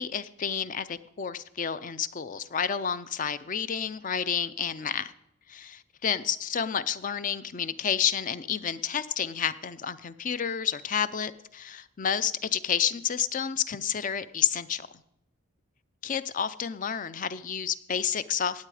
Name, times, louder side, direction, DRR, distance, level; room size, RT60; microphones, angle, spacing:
voice 1, 0.0-5.1 5.5-14.9 16.0-18.7, left 7 dB, 35° left, 15 dB, 0.5 m, -30 dB
16.5 x 8.5 x 4.8 m, 0.82 s
head